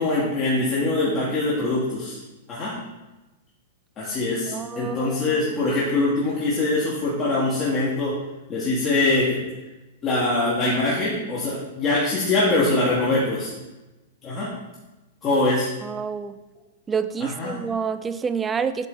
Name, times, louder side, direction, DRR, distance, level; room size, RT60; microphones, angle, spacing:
voice 1, 0.0-2.2 2.5-2.7 4.0-8.1 8.5-9.4 10.0-13.5 14.2-14.5 15.2-15.7 17.4-17.5, left 2 dB, 30° left, -7 dB, 1.4 m, -23 dB
voice 2, 4.5-5.4 15.8-16.4 16.9-18.9, right 6 dB, 15° right, 12 dB, 0.3 m, -28 dB
8.2 x 3.7 x 3.7 m, 1.1 s
hypercardioid pair, 135°, 0 cm